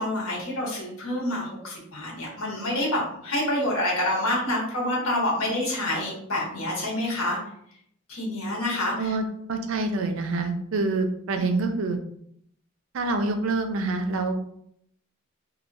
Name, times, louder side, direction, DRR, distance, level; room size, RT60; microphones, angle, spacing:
voice 1, 0.0-7.4 8.1-9.1 11.4-11.8, left 1 dB, 80° left, -4 dB, 1.2 m, -27 dB
voice 2, 9.0-12.0 12.9-14.4, right 3 dB, 70° right, 6 dB, 0.4 m, -26 dB
3.1 x 2.6 x 2.6 m, 0.69 s
head